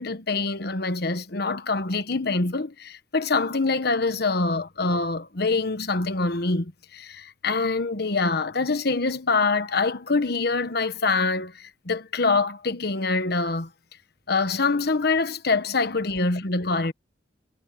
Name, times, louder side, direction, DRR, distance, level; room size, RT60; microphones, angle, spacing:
voice 1, 0.0-13.7 14.3-16.9, left 3 dB, 55° left, 1.2 m, -25 dB
head